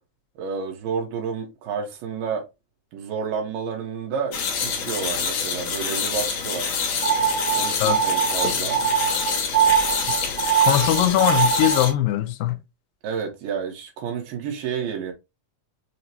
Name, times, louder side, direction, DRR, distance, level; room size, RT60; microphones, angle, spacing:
voice 1, 0.4-2.5 2.9-6.8 7.5-8.8 13.0-15.1, right 6 dB, 80° right, 2.8 m, -30 dB
sound 1, 4.3-11.9, left 6 dB, 65° left, 1.9 m, -27 dB
sound 2, 7.0-11.9, right 8 dB, 55° right, 1.6 m, -22 dB
voice 2, 10.6-12.6, left 12 dB, 85° left, 2.2 m, -21 dB
6.4 x 2.1 x 2.8 m
omnidirectional pair, 3.9 m